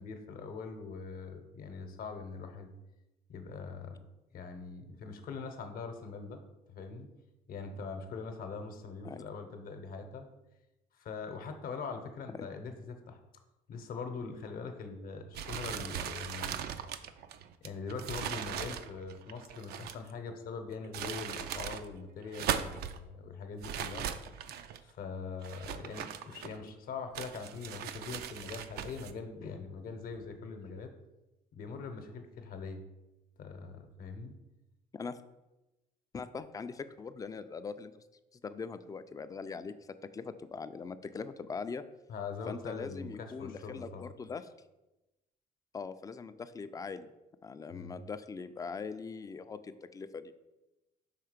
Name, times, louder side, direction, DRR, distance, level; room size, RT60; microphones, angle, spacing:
voice 1, 0.0-2.7 3.3-4.0 4.3-6.4 6.7-7.1 7.5-10.3 11.0-13.2 13.7-16.6 17.6-24.1 24.8-30.9 31.5-32.8 33.4-34.3 42.1-44.1 47.7-48.0, left 4 dB, 60° left, 7 dB, 0.9 m, -42 dB
sound 1, 15.3-20.1 20.7-21.8 22.2-23.0 23.6-24.8 25.4-26.7 27.1-29.1, right 9 dB, 70° right, 0.4 m, -39 dB
voice 2, 36.1-38.0 38.3-41.8 42.5-44.5 45.7-47.1 47.4-50.3, left 5 dB, 20° left, 11 dB, 0.3 m, -41 dB
5.7 x 3.6 x 5.0 m, 1.0 s
cardioid pair, 110°, 17 cm